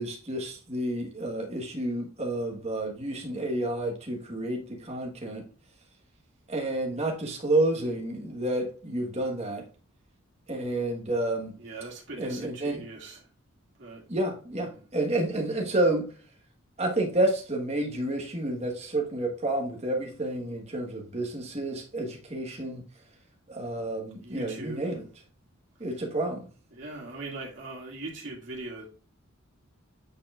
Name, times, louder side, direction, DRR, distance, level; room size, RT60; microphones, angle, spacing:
voice 1, 0.0-5.5 6.5-9.6 10.5-11.5 12.2-12.8 14.1-16.0 16.8-22.8 23.5-25.1 25.8-26.5, right 1 dB, 30° right, 1.3 m, -30 dB
voice 2, 11.6-13.3 13.8-14.0 14.5-14.8 24.2-24.8 26.7-28.9, right 2 dB, 60° right, 2.2 m, -40 dB
8.5 x 4.7 x 2.4 m
head